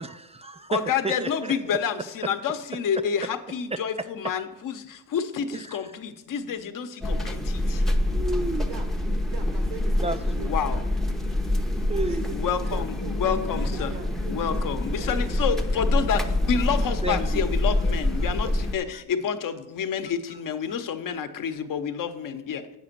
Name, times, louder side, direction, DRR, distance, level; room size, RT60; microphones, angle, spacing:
voice 1, 0.0-0.8 1.0-1.5 2.2-2.3 3.7-3.8 5.5-5.8 8.1-8.7 10.0-10.5 11.9-12.2 17.0-17.4 17.8-18.3 21.1-21.3, right 3 dB, 15° right, 9 dB, 0.3 m, -32 dB
voice 2, 0.7-7.8 10.4-10.8 12.3-13.9 14.3-22.8, left 7 dB, 50° left, 8 dB, 0.9 m, -29 dB
voice 3, 1.4-1.8 8.4-10.8 12.1-14.4 15.0-15.8, right 5 dB, 90° right, 6 dB, 1.7 m, -42 dB
sound 1, 7.0-18.8, left 1 dB, ahead, 0.7 m, -26 dB
8.2 x 5.0 x 6.7 m, 0.93 s
supercardioid pair, 85°, 41 cm